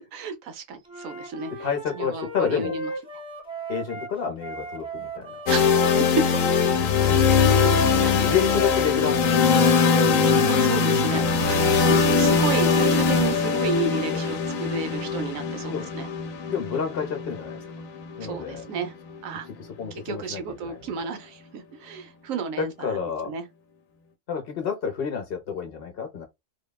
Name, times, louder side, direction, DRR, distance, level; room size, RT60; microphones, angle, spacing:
voice 1, 0.0-2.9 5.4-6.2 6.5-8.3 10.5-16.1 18.2-18.9 19.2-19.5 20.0-23.4, right 4 dB, 90° right, 1.1 m, -32 dB
Wind instrument woodwind instrument, 0.9-7.9, right 2 dB, 5° right, 0.7 m, -37 dB
voice 2, 1.6-2.7 3.7-5.4 7.1-7.2 8.1-10.3 14.1-14.2 15.7-15.9 16.5-17.6 18.2-18.7 19.8-20.8 22.6-23.3 24.3-26.3, left 7 dB, 55° left, 0.9 m, -30 dB
sound 1, 5.5-19.3, left 5 dB, 90° left, 1.0 m, -21 dB
3.2 x 2.1 x 2.2 m
omnidirectional pair, 1.3 m